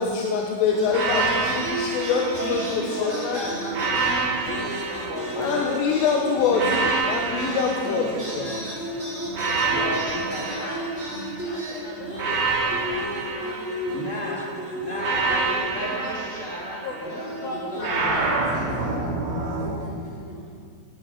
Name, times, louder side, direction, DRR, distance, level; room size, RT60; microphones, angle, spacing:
voice 1, 0.0-3.4 5.4-8.6, left 5 dB, 90° left, 0 dB, 3.6 m, -25 dB
sound 1, 0.6-16.7 17.0-20.5, equal, 5° right, 1.4 m, -33 dB
sound 2, 0.9-3.1 3.7-5.9 6.5-8.7 9.3-11.5 12.1-14.3 15.0-17.1 17.8-19.8, right 4 dB, 55° right, 2.2 m, -28 dB
voice 2, 2.4-5.8 9.7-10.6 13.9-14.4 14.8-18.6, equal, 75° right, -6 dB, 0.7 m, -34 dB
voice 3, 9.5-10.2 10.6-10.8 11.4-13.1 13.3-14.4 15.9-16.1 16.8-16.9 17.4-18.7 19.0-19.2, left 3 dB, 65° left, -2 dB, 2.5 m, -40 dB
17.5 x 10.5 x 5.3 m, 2.1 s
omnidirectional pair, 5.5 m